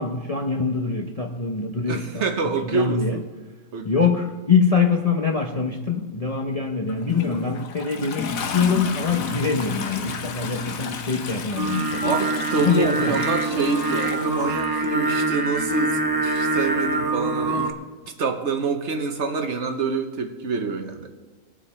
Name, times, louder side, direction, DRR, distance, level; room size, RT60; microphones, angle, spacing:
voice 1, 0.0-3.2 3.8-12.1 12.6-13.2, left 5 dB, 35° left, 2 dB, 0.6 m, -24 dB
voice 2, 1.9-3.2 3.7-4.1 8.0-8.2 12.0-17.7 18.2-21.1, right 4 dB, 55° right, 6 dB, 1.1 m, -26 dB
Toilet flush, 6.9-15.3 16.4-16.5, left 6 dB, 65° left, 1.2 m, -33 dB
Singing, 11.6-17.7, right 2 dB, 30° right, 0.4 m, -25 dB
20.5 x 7.3 x 4.3 m, 1.3 s
omnidirectional pair, 1.6 m